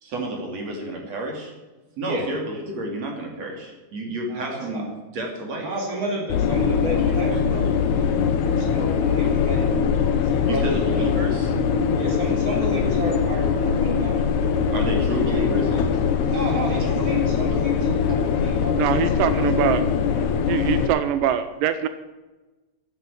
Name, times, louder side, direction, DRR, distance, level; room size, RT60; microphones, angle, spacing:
voice 1, 0.0-1.5 2.0-5.7 10.5-11.5 14.7-15.9, right 1 dB, 45° right, 1 dB, 3.5 m, -30 dB
voice 2, 4.2-4.8 5.6-8.1 8.4-9.7 10.3-11.1 11.9-14.2 15.2-15.4 16.3-19.8, right 1 dB, 20° right, -2 dB, 4.2 m, -31 dB
sound 1, 6.3-20.9, left 6 dB, 70° left, 1.8 m, -22 dB
voice 3, 18.8-19.8 20.5-21.9, right 10 dB, 85° right, 11 dB, 1.9 m, -23 dB
11.0 x 10.5 x 10.0 m, 1.2 s
omnidirectional pair, 4.8 m